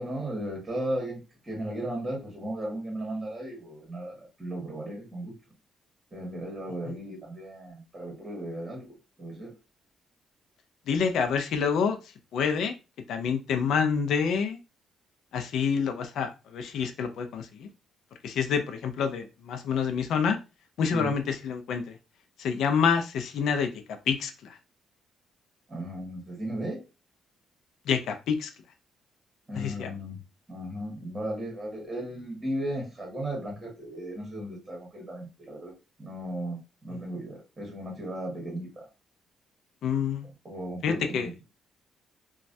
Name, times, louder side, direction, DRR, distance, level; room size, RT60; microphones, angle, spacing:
voice 1, 0.0-5.3 6.1-8.9 9.2-9.5 20.9-21.1 25.7-26.8 29.5-30.2 30.5-35.7 36.0-38.9 40.4-41.3, right 1 dB, 20° right, -1 dB, 1.5 m, -35 dB
voice 2, 10.9-12.0 12.3-12.7 13.1-14.6 15.3-17.7 18.2-20.4 20.8-21.9 22.4-24.6 27.9-28.5 29.5-29.9 36.9-37.0 39.8-40.3 40.8-41.3, left 6 dB, 75° left, 7 dB, 0.4 m, -27 dB
3.0 x 2.3 x 2.6 m, 0.29 s
cardioid pair, 90°, 0 cm